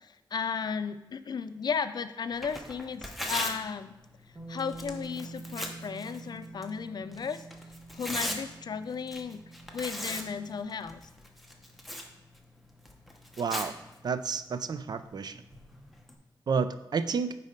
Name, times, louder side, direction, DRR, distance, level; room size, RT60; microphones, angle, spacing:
voice 1, 0.0-3.9 4.5-7.4 7.9-9.4 9.7-11.0, left 6 dB, 60° left, 11 dB, 0.4 m, -35 dB
Tearing, 2.3-16.1, equal, ahead, 0.9 m, -41 dB
Bass guitar, 4.4-10.6, right 3 dB, 20° right, 1.4 m, -47 dB
voice 2, 13.4-13.7 14.0-15.4 16.5-17.4, right 5 dB, 60° right, 12 dB, 0.4 m, -30 dB
9.5 x 4.1 x 5.1 m, 0.94 s
wide cardioid pair, 125°, 8 cm